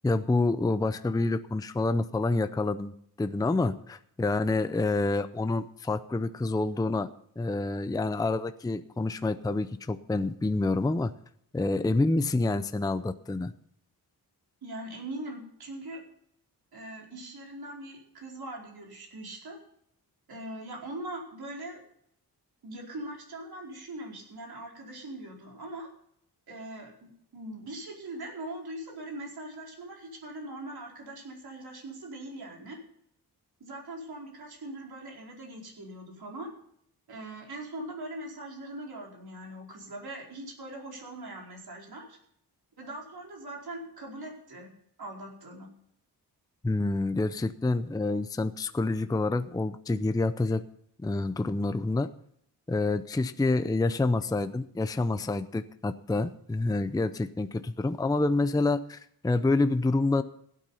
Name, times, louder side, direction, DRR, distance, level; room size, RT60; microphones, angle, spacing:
voice 1, 0.0-7.1 7.4-11.1 11.5-13.5 46.6-50.6 51.0-52.1 52.7-60.2, left 2 dB, 10° left, 11 dB, 0.5 m, -27 dB
voice 2, 14.6-16.0 16.7-19.6 20.3-21.8 22.6-25.9 26.5-32.8 33.6-36.5 37.1-42.2 42.8-44.7 45.0-45.7, right 1 dB, 65° right, -1 dB, 4.8 m, -41 dB
16.0 x 9.3 x 5.6 m, 0.69 s
wide cardioid pair, 120°, 40 cm